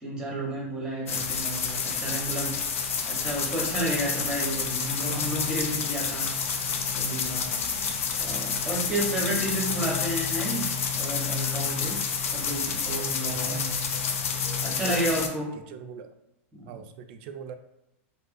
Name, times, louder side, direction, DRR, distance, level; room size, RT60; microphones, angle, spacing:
voice 1, 0.0-2.6 3.1-6.3 6.9-7.5 8.2-12.0 12.3-13.7 14.6-15.5 16.5-16.8, right 1 dB, 10° right, -3 dB, 1.0 m, -31 dB
sound 1, 1.1-15.3, left 6 dB, 85° left, 0.4 m, -29 dB
voice 2, 13.3-13.7 14.9-15.0 15.7-16.1 16.7-17.5, right 7 dB, 60° right, 8 dB, 0.3 m, -42 dB
2.6 x 2.3 x 2.5 m, 0.88 s
hypercardioid pair, 110°, 7 cm